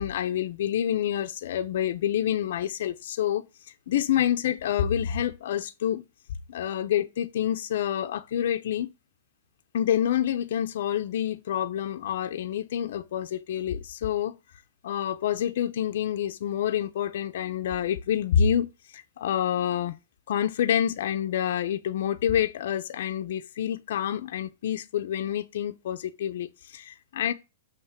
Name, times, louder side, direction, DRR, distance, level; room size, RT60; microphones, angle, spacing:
voice 1, 0.0-6.0 6.5-8.9 9.7-14.4 14.8-18.7 18.9-20.0 20.3-27.3, left 10 dB, 70° left, 0.6 m, -27 dB
7.5 x 3.0 x 5.8 m
hypercardioid pair, 135°, 0 cm